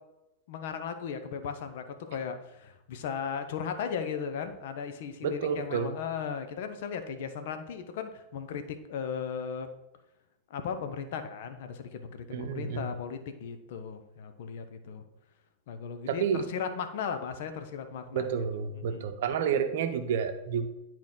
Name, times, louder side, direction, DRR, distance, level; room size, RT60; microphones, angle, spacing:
voice 1, 0.5-9.7 10.5-15.1 15.7-18.4 18.7-19.1, left 7 dB, 55° left, 8 dB, 0.8 m, -36 dB
voice 2, 5.2-5.9 12.3-12.9 16.1-16.5 18.1-20.7, right 7 dB, 55° right, 8 dB, 0.7 m, -30 dB
10.5 x 4.5 x 3.8 m, 0.92 s
figure-of-eight pair, 90°, 0 cm